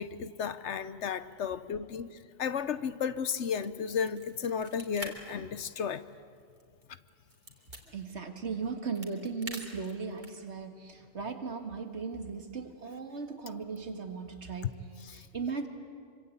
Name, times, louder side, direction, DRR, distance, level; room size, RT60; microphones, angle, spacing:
voice 1, 0.0-6.0 15.0-15.3, left 7 dB, 70° left, 14 dB, 1.1 m, -34 dB
sound 1, 3.6-5.1 5.4-5.6 6.0-7.8 8.6-10.5, right 2 dB, 40° right, 3.0 m, -45 dB
voice 2, 7.9-15.7, right 5 dB, 65° right, 6 dB, 2.1 m, -37 dB
25.5 x 25.0 x 8.6 m, 2.2 s
omnidirectional pair, 1.3 m